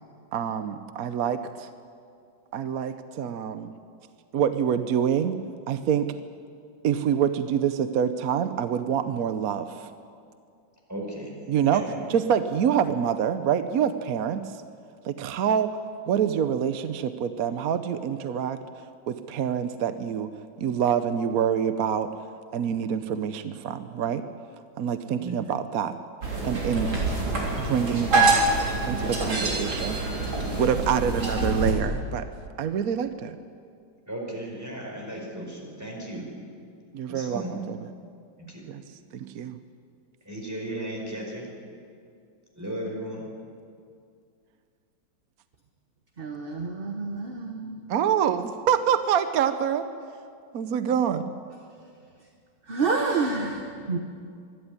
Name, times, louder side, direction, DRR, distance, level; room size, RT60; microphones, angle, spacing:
voice 1, 0.3-1.7 2.5-3.7 4.3-5.4 5.7-6.1 6.8-9.9 11.5-11.8 12.1-14.4 15.0-15.7 16.1-18.6 19.1-20.3 20.6-22.1 22.5-24.2 24.8-26.0 26.4-27.1 27.6-28.4 28.9-30.0 30.6-32.3 32.6-33.4 36.9-37.8 38.7-38.8 39.1-39.6 47.9-49.9 50.5-51.3, right 8 dB, 60° right, 10 dB, 1.0 m, -26 dB
voice 2, 10.9-11.3 11.7-12.0 25.2-25.4 34.1-36.2 37.1-37.5 38.4-38.6 40.2-41.5 42.5-43.3, right 1 dB, 10° right, -1 dB, 4.9 m, -35 dB
sound 1, 26.2-31.7, right 2 dB, 80° right, 4.4 m, -25 dB
voice 3, 46.2-47.8 52.7-54.0, right 4 dB, 35° right, 3 dB, 1.2 m, -28 dB
25.5 x 11.5 x 9.7 m, 2.3 s
omnidirectional pair, 2.1 m